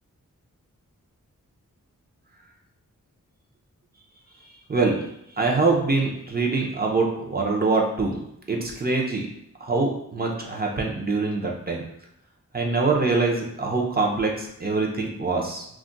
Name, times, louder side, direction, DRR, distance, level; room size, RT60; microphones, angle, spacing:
voice 1, 5.4-8.2 8.5-9.2 9.6-11.8 12.5-15.6, right 3 dB, 30° right, 0 dB, 0.6 m, -24 dB
2.4 x 2.2 x 3.8 m, 0.80 s
wide cardioid pair, 90°, 32 cm